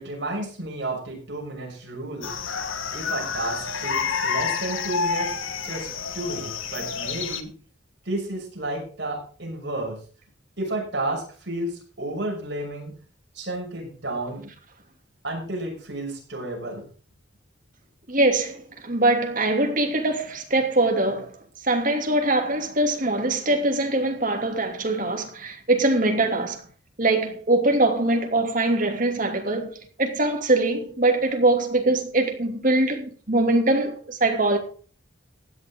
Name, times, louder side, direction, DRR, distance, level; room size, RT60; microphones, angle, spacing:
voice 1, 0.0-2.4 2.9-5.3 5.6-7.5 8.0-10.0 10.6-12.9 13.3-14.5 15.2-16.9, right 1 dB, 60° right, 6.6 m, -32 dB
sound 1, 2.2-7.4, left 6 dB, 90° left, 1.7 m, -29 dB
voice 2, 18.1-21.4 21.6-26.6 27.0-34.6, right 2 dB, 40° right, 2.7 m, -22 dB
16.0 x 10.5 x 3.8 m
head